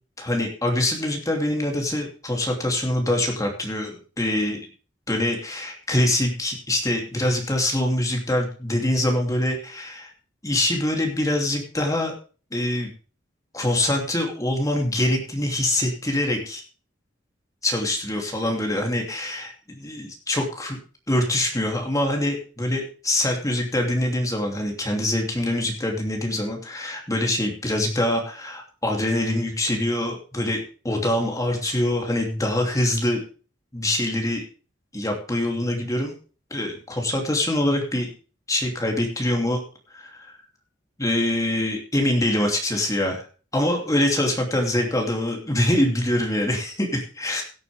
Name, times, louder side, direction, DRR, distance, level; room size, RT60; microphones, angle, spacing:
voice 1, 0.2-4.6 5.1-10.1 10.4-12.1 12.5-12.9 13.5-16.6 17.6-20.8 21.1-33.2 33.7-34.4 34.9-36.1 36.5-38.1 38.5-39.6 39.9-40.3 41.0-43.2 43.5-47.4, left 1 dB, 20° left, 1 dB, 2.9 m, -24 dB
17.0 x 9.3 x 3.5 m, 0.37 s
head